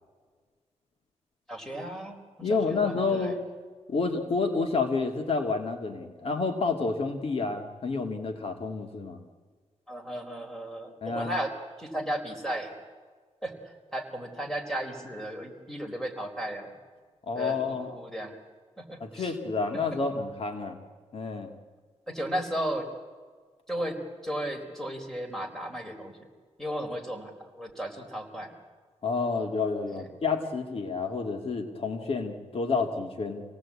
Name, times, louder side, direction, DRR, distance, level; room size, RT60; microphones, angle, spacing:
voice 1, 1.5-3.3 9.9-11.5 11.8-12.8 13.4-16.7 17.3-18.4 18.8-19.3 22.1-22.9 23.7-26.3 26.6-28.5 29.9-30.0, right 1 dB, 5° left, 3 dB, 4.1 m, -35 dB
voice 2, 2.4-3.4 3.9-9.2 11.0-11.4 17.3-18.0 19.0-20.8 21.1-21.5 29.0-33.4, left 4 dB, 55° left, 4 dB, 2.3 m, -29 dB
27.0 x 18.0 x 8.5 m, 1.5 s
wide cardioid pair, 105°, 12 cm